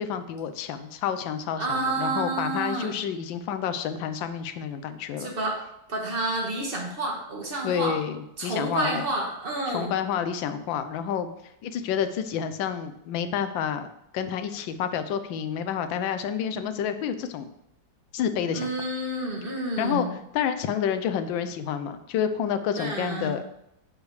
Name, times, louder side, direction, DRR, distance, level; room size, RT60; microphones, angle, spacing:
voice 1, 0.0-5.3 7.6-9.0 9.7-11.3 11.6-17.5 18.1-18.7 19.8-20.1 20.3-23.4, left 8 dB, 75° left, 9 dB, 1.4 m, -29 dB
voice 2, 1.6-2.9 5.2-5.6 5.9-8.0 8.4-10.0 18.5-20.1 22.8-23.4, right 2 dB, 30° right, 0 dB, 1.6 m, -29 dB
8.2 x 4.8 x 4.8 m, 0.80 s
omnidirectional pair, 2.1 m